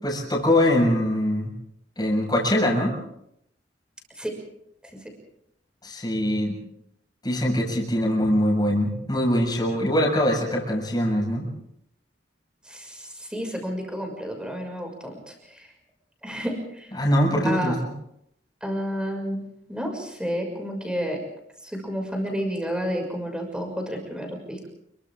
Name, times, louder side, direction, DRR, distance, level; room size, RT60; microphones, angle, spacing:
voice 1, 0.0-1.5 2.0-3.0 5.8-6.6 7.2-11.5 17.0-17.8, left 1 dB, 25° left, 0 dB, 6.9 m, -22 dB
voice 2, 12.7-15.6 16.2-16.9 17.4-17.7 18.6-19.4 19.7-21.2 21.6-24.7, equal, 5° right, 3 dB, 6.2 m, -30 dB
29.5 x 24.0 x 3.8 m, 0.74 s
head